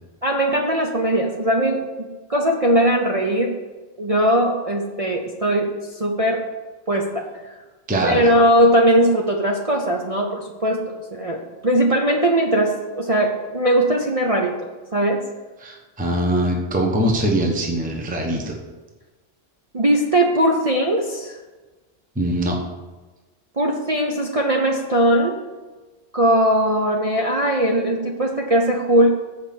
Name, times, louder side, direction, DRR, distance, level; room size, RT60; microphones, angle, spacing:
voice 1, 0.2-1.8 2.3-3.5 4.0-6.4 6.9-7.2 8.0-10.8 11.1-14.5 14.9-15.2 19.7-21.4 23.6-25.4 26.1-29.1, right 1 dB, 35° right, -1 dB, 0.7 m, -19 dB
voice 2, 7.9-8.3 15.6-18.6 22.2-22.6, right 1 dB, 5° right, 0 dB, 0.9 m, -22 dB
8.1 x 5.0 x 7.0 m, 1.2 s
omnidirectional pair, 1.3 m